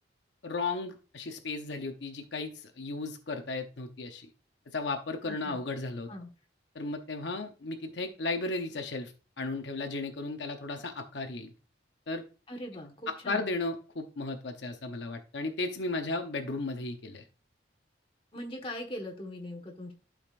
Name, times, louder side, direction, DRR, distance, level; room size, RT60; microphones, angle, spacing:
voice 1, 0.4-4.3 4.7-6.1 6.7-11.5 12.1-12.2 13.1-17.2, left 3 dB, 70° left, 5 dB, 0.8 m, -35 dB
voice 2, 5.3-5.6 6.1-6.3 12.5-13.4 18.3-19.9, left 1 dB, 30° left, 1 dB, 1.4 m, -40 dB
12.0 x 5.0 x 2.5 m, 0.35 s
head